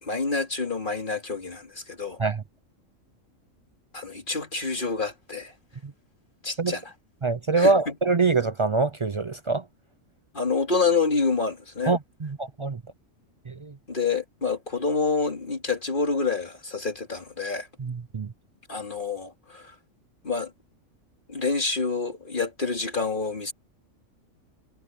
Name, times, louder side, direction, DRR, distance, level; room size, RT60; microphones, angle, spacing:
voice 1, 0.0-2.2 3.9-5.5 6.4-6.8 7.6-7.9 10.3-11.9 13.9-17.7 18.7-19.7 20.2-20.5 21.3-23.5, left 4 dB, 40° left, 3.0 m, -27 dB
voice 2, 7.2-9.6 11.9-12.8 13.5-13.7 17.8-18.3, right 3 dB, 50° right, 0.3 m, -24 dB
omnidirectional pair, 1.4 m